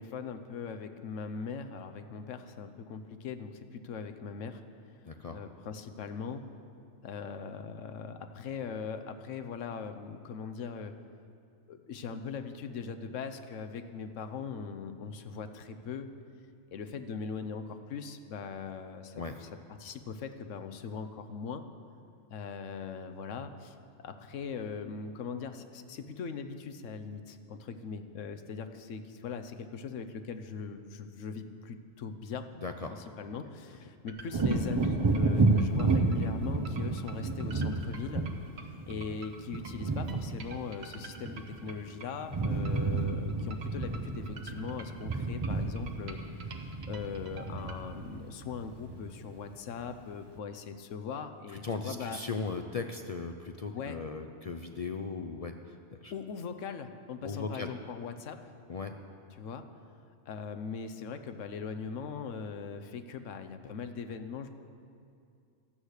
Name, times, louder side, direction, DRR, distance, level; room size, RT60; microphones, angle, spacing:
voice 1, 0.0-4.6 5.3-6.4 7.0-10.9 11.7-16.1 16.7-19.5 19.8-21.6 22.3-23.8 24.0-32.5 33.2-38.2 38.9-52.2 53.7-54.0 56.1-58.4 59.3-59.6 60.3-64.5, left 5 dB, 80° left, 8 dB, 1.1 m, -40 dB
voice 2, 5.0-5.4 19.2-19.4 32.6-32.9 51.5-56.1 57.2-57.7 58.7-58.9, left 4 dB, 55° left, 5 dB, 0.4 m, -37 dB
sound 1, 34.1-47.8, right 4 dB, 60° right, 1.1 m, -49 dB
Wind / Thunder, 34.3-41.9 42.1-49.4 49.8-50.0, right 3 dB, 25° right, 0.6 m, -31 dB
13.0 x 8.2 x 6.5 m, 2.4 s
omnidirectional pair, 1.3 m